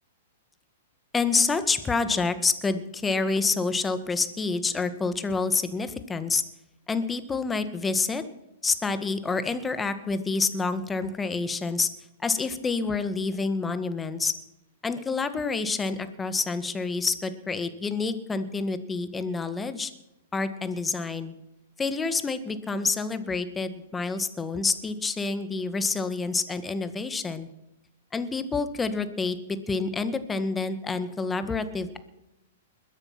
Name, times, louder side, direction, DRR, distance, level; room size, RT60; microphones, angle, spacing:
voice 1, 1.1-6.4 6.9-8.2 8.6-11.9 12.2-14.3 14.8-19.9 20.3-21.3 21.8-27.5 28.1-32.0, left 4 dB, 15° left, 11 dB, 1.5 m, -28 dB
21.5 x 9.9 x 6.0 m, 0.92 s
hypercardioid pair, 125°, 0 cm